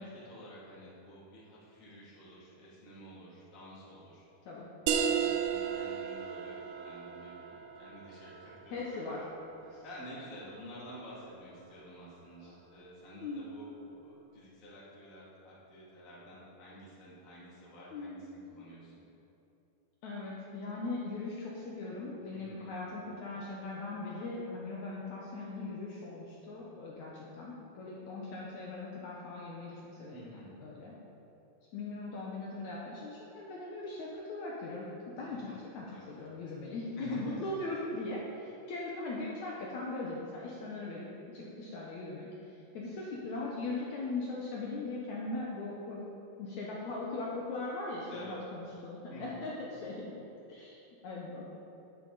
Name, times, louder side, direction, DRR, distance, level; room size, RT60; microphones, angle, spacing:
voice 1, 0.0-4.3 5.0-18.9 22.3-22.7 30.0-30.6 35.2-36.4 37.0-37.4 48.1-48.4 49.1-49.5, equal, 25° left, -8 dB, 2.5 m, -51 dB
sound 1, 4.9-10.2, right 8 dB, 80° right, 2.0 m, -35 dB
voice 2, 8.7-9.2 9.7-9.8 13.2-13.5 17.9-18.2 20.0-30.2 30.6-30.9 31.7-34.9 35.2-41.0 41.3-42.3 42.7-46.0 46.4-50.2 50.5-51.4, left 2 dB, 70° left, -4 dB, 1.9 m, -39 dB
10.5 x 9.9 x 4.1 m, 2.9 s
omnidirectional pair, 4.3 m